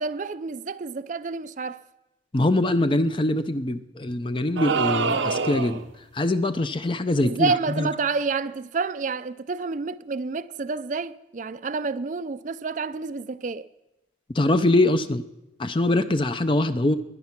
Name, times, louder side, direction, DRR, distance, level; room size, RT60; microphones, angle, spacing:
voice 1, 0.0-1.8 7.2-13.7, right 4 dB, 40° right, 0.4 m, -29 dB
voice 2, 2.3-5.8 6.1-7.9 14.3-15.2 15.6-17.0, left 1 dB, 25° left, 0.6 m, -23 dB
sound 1, 4.6-5.9, right 4 dB, 85° right, 0.9 m, -25 dB
21.0 x 9.5 x 5.9 m
head